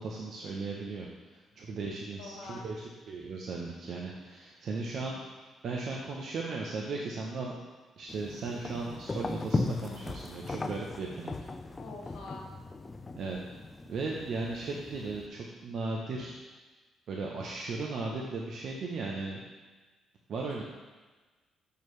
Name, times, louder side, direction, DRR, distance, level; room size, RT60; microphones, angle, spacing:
voice 1, 0.0-5.2 5.6-7.6 8.0-11.3 13.2-13.4 13.9-16.4 17.1-19.4 20.3-20.6, right 3 dB, 65° right, -2 dB, 0.7 m, -36 dB
voice 2, 2.2-2.7 11.8-12.5, left 3 dB, 80° left, -1 dB, 1.0 m, -44 dB
sound 1, 8.1-15.3, left 3 dB, 25° left, 0.4 m, -37 dB
6.9 x 4.6 x 3.2 m, 1.3 s
cardioid pair, 90°, 0 cm